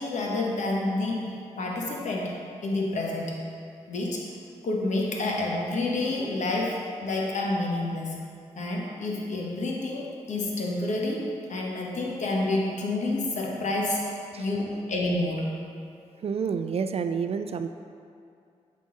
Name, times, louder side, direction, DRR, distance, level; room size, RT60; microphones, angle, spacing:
voice 1, 0.0-2.4 2.6-3.4 3.9-4.2 4.6-8.1 8.5-15.6, left 2 dB, 70° left, -1 dB, 1.1 m, -29 dB
voice 2, 16.2-17.7, right 6 dB, 55° right, 9 dB, 0.4 m, -29 dB
8.3 x 3.8 x 3.8 m, 2.4 s
cardioid pair, 60°, 13 cm